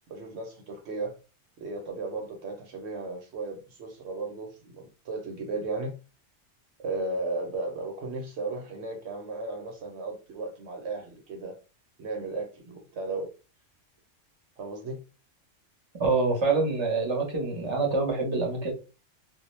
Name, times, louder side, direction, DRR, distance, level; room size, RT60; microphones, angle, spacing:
voice 1, 0.1-1.1 1.6-6.0 6.8-11.5 12.0-13.3 14.6-15.0, right 3 dB, 65° right, 0.9 m, -35 dB
voice 2, 16.0-18.7, right 3 dB, 25° right, 0.7 m, -26 dB
2.2 x 2.1 x 3.1 m
omnidirectional pair, 1.3 m